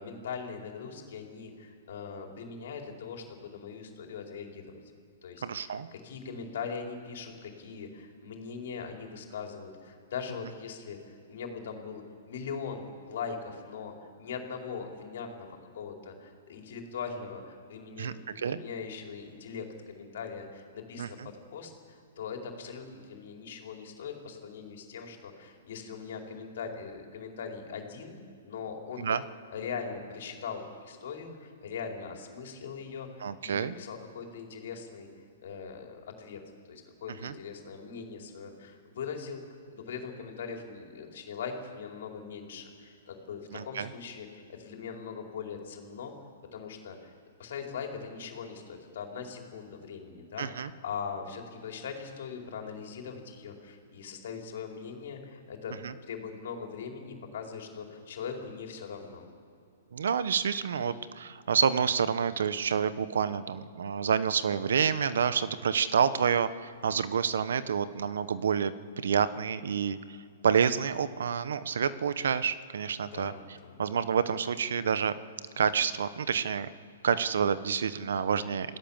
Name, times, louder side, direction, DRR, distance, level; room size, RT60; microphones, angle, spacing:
voice 1, 0.0-4.6 5.2-21.2 21.5-28.2 28.4-29.2 29.5-35.1 35.4-36.4 36.7-39.4 39.7-46.1 46.5-47.1 47.4-55.7 56.1-59.2 73.0-73.7, left 6 dB, 65° left, 2 dB, 4.7 m, -41 dB
voice 2, 5.4-5.9 18.0-18.6 21.0-21.3 29.0-29.2 33.2-33.7 37.2-37.3 43.5-43.9 50.4-50.7 55.8-55.9 59.9-70.2 70.4-73.3 73.8-75.1 75.6-76.7 77.0-78.8, right 7 dB, 80° right, 14 dB, 1.1 m, -28 dB
27.5 x 17.0 x 7.4 m, 2.5 s
hypercardioid pair, 150°, 0 cm